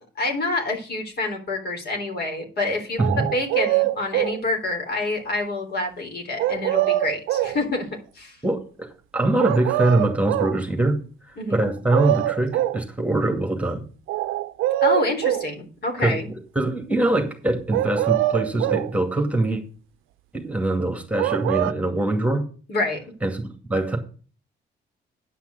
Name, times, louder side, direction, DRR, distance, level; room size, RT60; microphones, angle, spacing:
voice 1, 0.2-7.9 8.2-8.3 11.4-11.7 14.8-16.3 22.7-23.0, left 2 dB, 55° left, 2 dB, 3.8 m, -27 dB
sound 1, 3.0-4.4 6.4-7.6 9.4-10.6 11.6-11.7 11.9-12.8 14.1-15.5 17.7-18.9 21.2-21.7, right 14 dB, 90° right, 0.5 m, -23 dB
voice 2, 8.4-11.0 11.5-13.8 16.0-16.2 16.6-19.6 20.3-22.5 23.2-23.4 23.7-24.0, right 2 dB, 5° right, 4 dB, 2.3 m, -23 dB
10.0 x 5.9 x 6.9 m, 0.39 s
cardioid pair, 90°, 20 cm